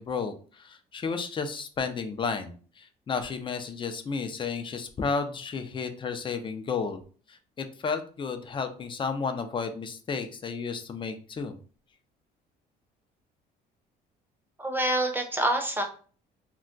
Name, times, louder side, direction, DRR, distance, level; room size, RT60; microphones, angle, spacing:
voice 1, 0.0-7.0 7.3-11.6, left 5 dB, 30° left, 8 dB, 0.5 m, -32 dB
voice 2, 14.6-15.8, right 1 dB, 10° right, 3 dB, 0.6 m, -26 dB
2.2 x 2.2 x 3.7 m, 0.41 s
cardioid pair, 110°, 17 cm